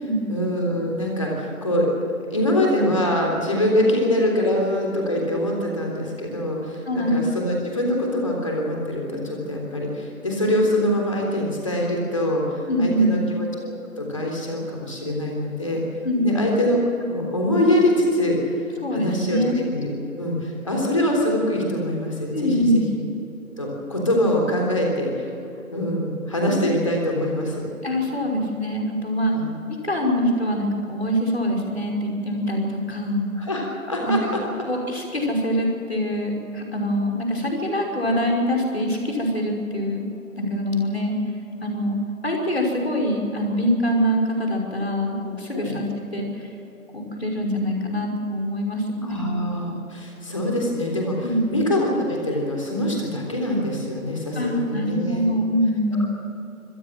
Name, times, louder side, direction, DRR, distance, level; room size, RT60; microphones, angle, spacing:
voice 1, 0.3-1.9 2.3-15.8 16.2-16.8 17.1-18.4 18.9-22.8 23.6-25.3 25.7-27.6 29.3-29.5 33.4-34.4 45.5-45.7 49.0-55.3, left 1 dB, 25° left, -1 dB, 3.5 m, -24 dB
voice 2, 6.9-7.3 12.7-13.3 16.0-16.5 18.8-19.6 22.3-22.9 27.8-29.3 29.8-33.2 34.0-34.4 34.7-40.1 40.4-41.1 41.6-42.0 42.2-46.5 46.9-49.3 51.2-51.5 54.3-56.1, equal, 45° left, -1 dB, 5.6 m, -24 dB
27.0 x 15.5 x 7.7 m, 3.0 s
figure-of-eight pair, 175°, 42 cm